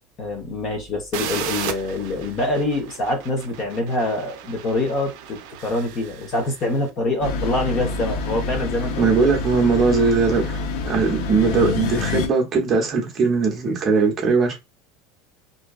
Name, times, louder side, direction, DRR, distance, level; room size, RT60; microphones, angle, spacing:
voice 1, 0.2-9.3 10.0-10.1, left 2 dB, 35° left, 0.8 m, -25 dB
sound 1, 1.1-6.8, right 9 dB, 65° right, 0.4 m, -35 dB
sound 2, 7.2-12.3, left 4 dB, 70° left, 0.5 m, -27 dB
voice 2, 9.0-10.6 10.8-14.6, right 4 dB, 30° right, 0.7 m, -20 dB
2.6 x 2.2 x 2.3 m
supercardioid pair, 150°, 0 cm